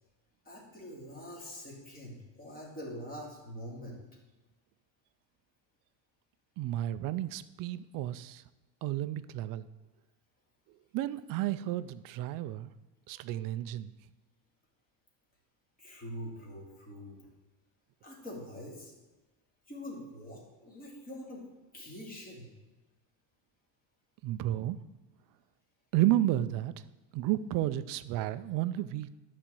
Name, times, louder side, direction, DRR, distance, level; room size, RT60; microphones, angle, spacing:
voice 1, 0.4-4.0 15.8-17.3 18.0-18.9 19.7-21.4 21.7-22.5, equal, 20° left, -3 dB, 2.7 m, -44 dB
voice 2, 6.6-8.4 8.8-9.6 10.9-12.7 13.1-13.9 24.2-24.8 25.9-26.8 27.1-29.1, right 14 dB, 45° right, 14 dB, 0.5 m, -32 dB
11.5 x 4.3 x 7.6 m, 1.1 s
cardioid pair, 155°, 48 cm